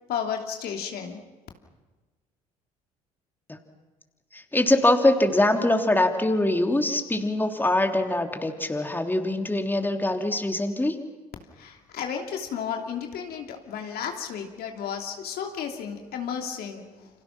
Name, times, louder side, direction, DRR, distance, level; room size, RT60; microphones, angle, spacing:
voice 1, 0.1-1.2 11.5-17.1, left 7 dB, 60° left, 3 dB, 3.0 m, -33 dB
voice 2, 4.3-11.0, left 1 dB, 10° left, 4 dB, 3.2 m, -23 dB
29.5 x 26.0 x 6.1 m, 1.2 s
hypercardioid pair, 60°, 18 cm